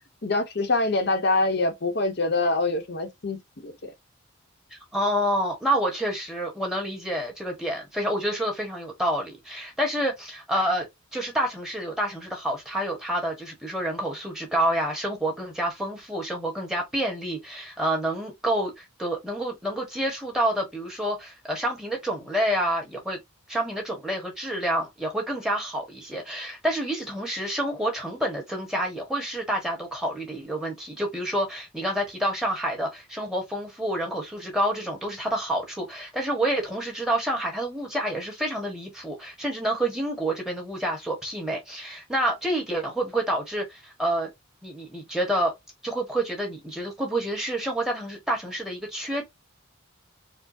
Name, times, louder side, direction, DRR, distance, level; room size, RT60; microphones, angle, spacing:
voice 1, 0.2-3.9, left 2 dB, 55° left, 0.9 m, -25 dB
voice 2, 4.7-10.9 11.1-23.2 23.5-44.3 44.6-45.5 45.8-49.2, right 1 dB, 5° right, 1.2 m, -28 dB
4.5 x 2.2 x 2.6 m
head